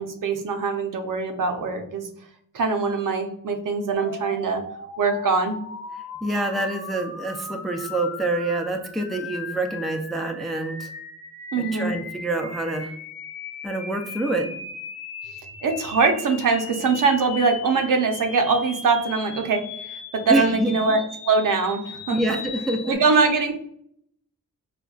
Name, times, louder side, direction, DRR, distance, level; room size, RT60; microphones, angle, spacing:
voice 1, 0.0-2.1 2.5-4.6 5.0-5.6 11.5-11.9 15.6-22.4 22.9-23.5, right 4 dB, 70° right, 5 dB, 0.7 m, -23 dB
sound 1, 3.9-22.9, left 4 dB, 40° left, 0.8 m, -38 dB
voice 2, 6.2-10.9 11.7-12.9 13.6-14.6 20.3-20.7 22.1-23.0, right 2 dB, ahead, 3 dB, 0.3 m, -26 dB
5.0 x 2.2 x 2.3 m, 0.69 s
wide cardioid pair, 130°, 34 cm